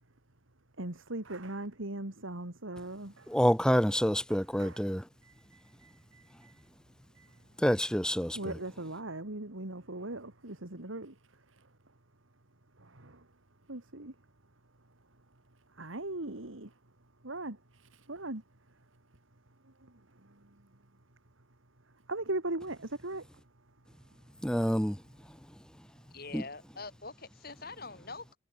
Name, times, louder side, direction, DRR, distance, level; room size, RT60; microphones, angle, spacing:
voice 1, 0.8-3.3 4.3-4.8 5.2-6.5 7.2-7.3 8.3-11.1 12.8-13.2 13.7-14.1 15.8-16.7 17.2-18.4 19.8-19.9 22.1-23.3, right 2 dB, 85° right, 2.7 m, -39 dB
voice 2, 3.3-5.0 7.6-8.6 24.4-25.0 26.3-26.4, equal, 5° left, 2.5 m, -27 dB
voice 3, 26.1-28.4, left 3 dB, 50° left, 7.4 m, -44 dB
head